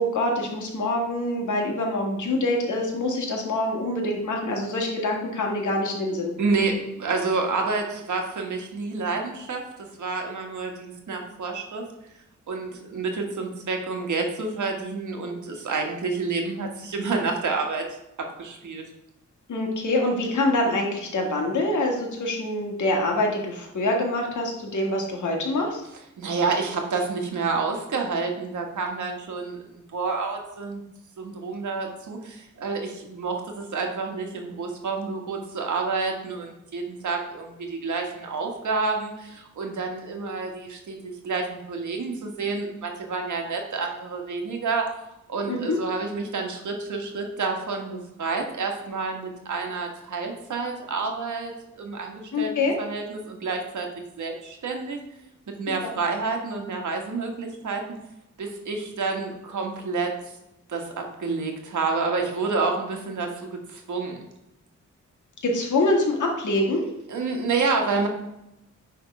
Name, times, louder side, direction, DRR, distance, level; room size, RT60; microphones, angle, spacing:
voice 1, 0.0-6.3 19.5-25.8 45.5-45.8 52.3-52.7 55.8-55.9 65.4-66.8, left 2 dB, 75° left, 0 dB, 1.9 m, -25 dB
voice 2, 6.4-11.8 12.5-17.8 18.2-18.9 26.2-30.8 31.2-44.9 45.3-52.5 52.8-53.9 54.2-55.0 55.5-58.0 58.4-60.1 60.7-64.2 67.1-68.1, right 4 dB, 75° right, 2 dB, 1.5 m, -29 dB
9.5 x 3.6 x 5.3 m, 0.86 s
wide cardioid pair, 145°, 30 cm